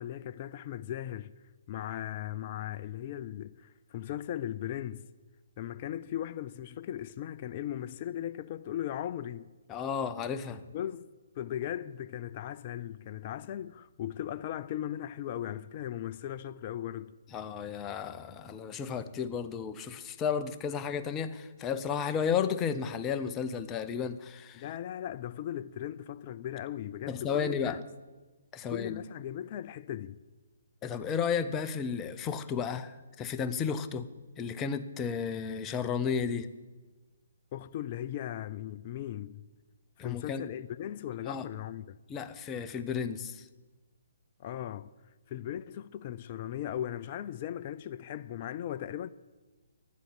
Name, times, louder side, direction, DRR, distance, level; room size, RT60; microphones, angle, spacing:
voice 1, 0.0-1.3 1.7-5.1 5.6-9.5 10.7-11.1 11.4-17.2 24.6-27.8 28.7-30.2 37.5-39.4 40.0-42.0 44.4-44.9 45.3-49.1, left 11 dB, 35° left, 0.4 m, -38 dB
voice 2, 9.7-10.6 17.3-24.6 27.1-27.8 28.5-29.0 30.8-34.1 34.4-36.5 40.0-40.4 41.3-41.5 42.1-43.5, left 7 dB, 20° left, 0.8 m, -33 dB
10.5 x 8.3 x 10.0 m
figure-of-eight pair, 135°, 0 cm